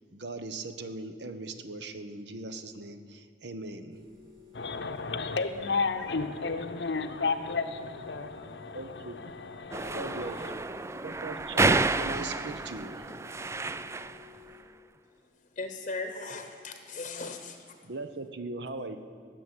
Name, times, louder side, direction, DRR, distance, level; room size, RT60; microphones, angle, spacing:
voice 1, 0.0-4.0 8.7-9.3 9.9-10.7 11.0-13.2 17.8-19.0, right 2 dB, 70° right, 1.0 m, -40 dB
sound 1, 3.9-14.6, left 10 dB, 55° right, 2.6 m, -54 dB
voice 2, 4.5-10.5, left 4 dB, 70° left, 0.8 m, -33 dB
sound 2, 9.7-14.3, right 3 dB, 15° right, 0.3 m, -30 dB
voice 3, 15.5-17.8, left 3 dB, 40° left, 0.9 m, -38 dB
17.5 x 7.1 x 9.6 m
head